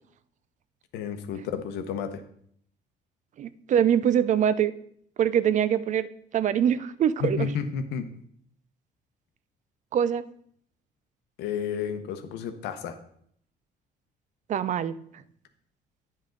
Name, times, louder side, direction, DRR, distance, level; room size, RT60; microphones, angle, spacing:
voice 1, 0.9-2.2 7.2-8.1 11.4-13.0, left 7 dB, 85° left, 8 dB, 0.9 m, -31 dB
voice 2, 3.4-4.7 5.2-6.1 6.3-7.5 9.9-10.2 14.5-14.9, right 9 dB, 45° right, 15 dB, 0.5 m, -23 dB
9.9 x 5.4 x 3.8 m, 0.66 s
cardioid pair, 110°, 17 cm